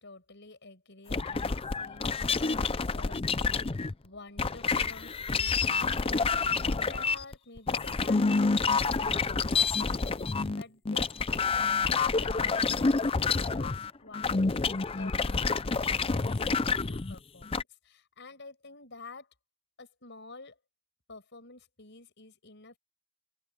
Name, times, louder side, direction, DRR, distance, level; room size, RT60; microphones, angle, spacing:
voice 1, 0.0-19.3 19.8-20.6 21.1-22.8, left 3 dB, 55° left, 7.1 m, -50 dB
sound 1, 1.1-3.9 4.4-17.6, left 4 dB, 25° left, 0.5 m, -28 dB
open air
head